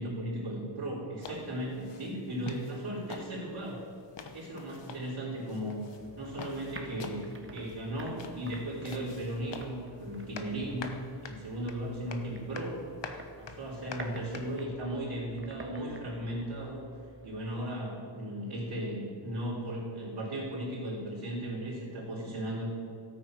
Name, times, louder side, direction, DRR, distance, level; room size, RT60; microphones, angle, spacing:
voice 1, 0.0-3.8 4.3-5.8 6.2-10.9 11.2-12.8 13.4-16.8 17.2-22.7, right 1 dB, 65° right, -9 dB, 3.8 m, -36 dB
sound 1, 1.2-14.6, left 5 dB, 65° left, 1.1 m, -47 dB
sound 2, 6.0-17.4, right 2 dB, 25° right, 1.5 m, -50 dB
13.5 x 8.7 x 6.2 m, 2.3 s
wide cardioid pair, 110°, 46 cm